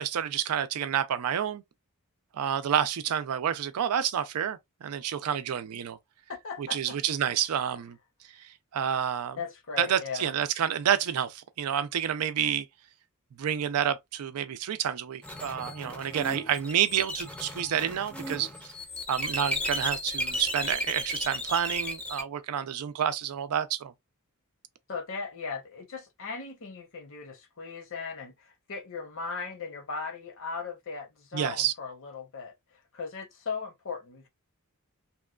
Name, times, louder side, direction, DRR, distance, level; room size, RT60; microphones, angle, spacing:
voice 1, 0.0-1.6 2.3-6.0 6.6-8.0 8.4-9.4 9.8-12.7 13.4-18.7 19.1-23.9 31.3-31.7, right 9 dB, 80° right, 0.4 m, -29 dB
voice 2, 6.3-7.0 9.4-10.3 24.9-34.3, left 5 dB, 60° left, 0.8 m, -38 dB
sound 1, 15.2-22.2, equal, 5° left, 0.5 m, -34 dB
2.9 x 2.2 x 2.3 m
head